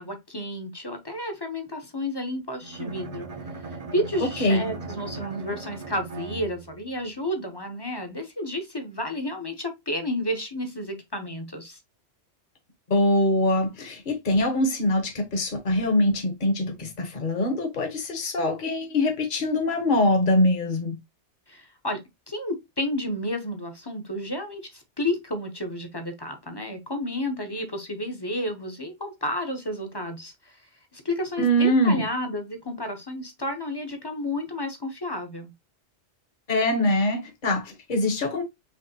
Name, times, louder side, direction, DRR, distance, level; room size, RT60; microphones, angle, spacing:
voice 1, 0.0-3.3 3.6-11.8 21.5-22.0 22.3-30.6 30.9-35.5, left 1 dB, 25° left, 0.8 m, -31 dB
Bowed string instrument, 2.6-6.9, right 3 dB, 40° right, 0.6 m, -38 dB
voice 2, 12.9-21.0 31.4-32.1 36.5-38.4, left 1 dB, 45° left, 1.2 m, -23 dB
5.3 x 3.2 x 2.7 m
omnidirectional pair, 1.2 m